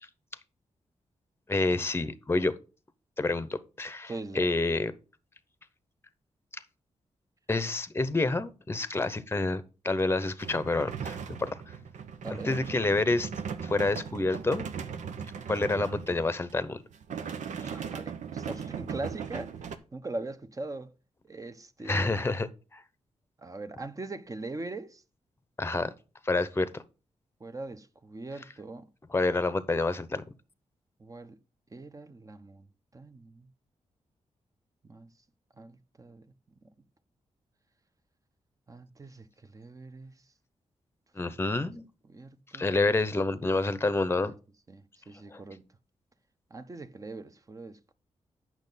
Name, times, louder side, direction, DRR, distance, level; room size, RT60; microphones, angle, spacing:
voice 1, 1.5-2.5 3.2-4.9 6.5-6.6 7.5-11.6 12.3-13.3 13.6-14.7 15.5-16.8 17.6-17.7 21.8-22.8 25.6-25.9 26.2-26.8 29.1-30.2 41.1-41.8 42.5-44.3 45.3-45.4, left 2 dB, 20° left, 0.8 m, -28 dB
voice 2, 4.1-4.5 12.2-12.6 17.6-19.6 19.9-20.9 21.3-22.3 23.4-25.0 27.4-28.9 31.0-31.4 31.7-32.7 32.9-33.5 34.8-35.1 35.6-36.2 38.7-40.1 41.3-41.6 42.1-42.7 44.2-44.3 44.7-45.7 46.5-47.9, right 2 dB, 30° right, 0.9 m, -41 dB
sound 1, 10.4-16.5 16.9-19.8, right 6 dB, 85° right, 0.8 m, -38 dB
8.8 x 6.2 x 4.0 m
cardioid pair, 90°, 12 cm